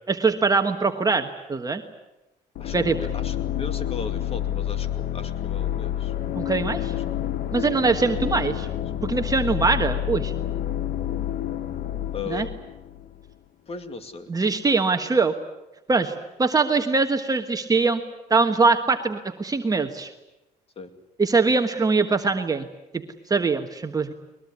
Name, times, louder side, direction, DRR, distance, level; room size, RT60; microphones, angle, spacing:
voice 1, 0.1-1.8 2.7-3.0 6.3-6.9 7.5-8.7 9.0-10.3 12.3-12.5 14.3-15.3 15.9-16.1 16.4-18.0 18.3-20.1 21.2-22.7 22.9-23.0 23.3-24.1, right 4 dB, 20° right, 5 dB, 1.4 m, -22 dB
sound 1, 2.6-13.3, left 11 dB, 65° left, 1.2 m, -29 dB
voice 2, 2.6-6.1 7.7-8.5 12.1-12.5 13.7-14.3 20.8-20.9, left 5 dB, 35° left, 9 dB, 2.5 m, -37 dB
22.0 x 21.5 x 9.7 m, 0.99 s
cardioid pair, 110°, 17 cm